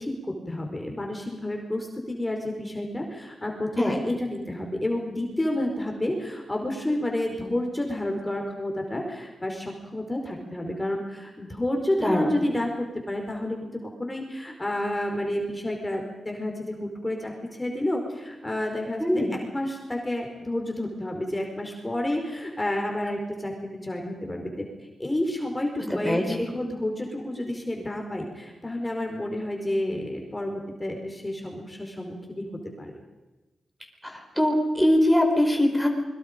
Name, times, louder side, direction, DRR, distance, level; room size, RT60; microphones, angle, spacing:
voice 1, 0.0-23.5 23.8-24.6 25.0-32.5 32.8-32.9, left 1 dB, 15° left, 2 dB, 4.5 m, -30 dB
voice 2, 12.0-12.3 19.0-19.4 25.9-26.5 34.0-35.9, left 1 dB, ahead, 2 dB, 4.7 m, -22 dB
28.0 x 22.5 x 5.3 m, 1.1 s
cardioid pair, 80°, 0 cm